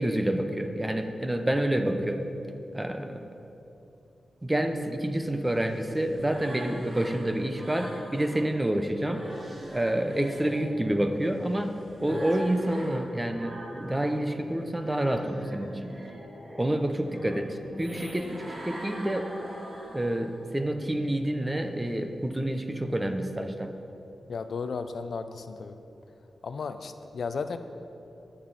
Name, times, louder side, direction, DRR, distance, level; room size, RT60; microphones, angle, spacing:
voice 1, 0.0-2.3 2.7-3.3 4.4-9.2 9.7-11.7 12.0-15.9 16.6-19.3 19.9-23.7, right 1 dB, 15° right, 6 dB, 0.8 m, -28 dB
sound 1, 5.1-8.5 8.9-14.2 14.6-20.5, right 1 dB, 40° right, 2.5 m, -43 dB
voice 2, 24.3-25.8 26.4-27.6, left 5 dB, 60° left, 9 dB, 0.6 m, -34 dB
21.0 x 7.9 x 4.1 m, 2.8 s
wide cardioid pair, 140°, 0 cm